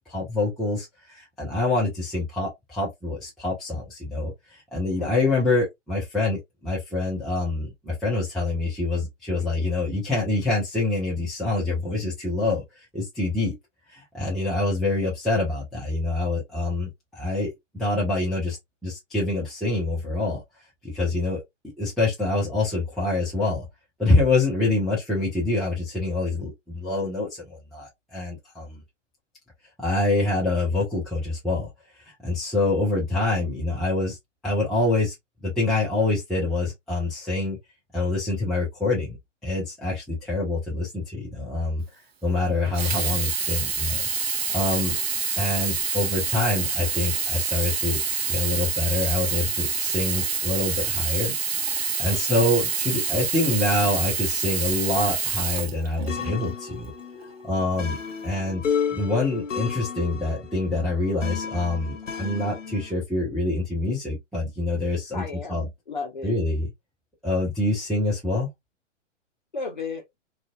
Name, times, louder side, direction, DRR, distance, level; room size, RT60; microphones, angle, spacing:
voice 1, 0.1-12.6 12.9-13.5 13.9-18.6 18.8-20.4 20.8-21.4 21.8-23.7 24.0-28.8 29.8-31.7 32.2-34.2 34.4-35.1 35.4-37.6 37.9-39.2 39.4-41.8 42.2-44.1 44.5-45.0 45.4-48.0 48.3-51.4 51.8-56.9 57.4-58.0 58.2-58.6 58.9-65.2 65.5-65.7 66.2-66.7 67.2-68.5, left 2 dB, ahead, 0.4 m, -26 dB
voice 2, 5.0-5.4 52.1-52.5 65.1-66.3 69.5-70.0, left 4 dB, 40° left, 0.7 m, -35 dB
Sink (filling or washing), 42.6-56.4 57.2-57.3, right 6 dB, 55° right, 0.6 m, -27 dB
sound 1, 56.1-62.9, left 7 dB, 75° left, 0.9 m, -32 dB
2.6 x 2.5 x 2.3 m
hypercardioid pair, 180°, 38 cm